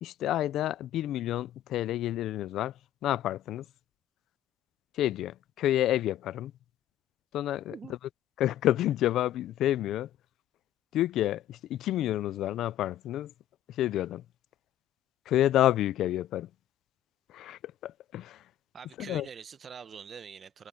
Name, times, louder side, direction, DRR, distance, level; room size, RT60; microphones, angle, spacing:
voice 1, 0.0-2.7 3.0-3.6 5.0-6.5 7.3-7.7 8.4-10.1 10.9-13.3 13.7-14.2 15.3-16.5 17.3-18.4 19.0-19.3, left 13 dB, 80° left, 0.4 m, -29 dB
voice 2, 18.7-20.7, right 6 dB, 50° right, 0.9 m, -45 dB
cardioid pair, 90°, 0 cm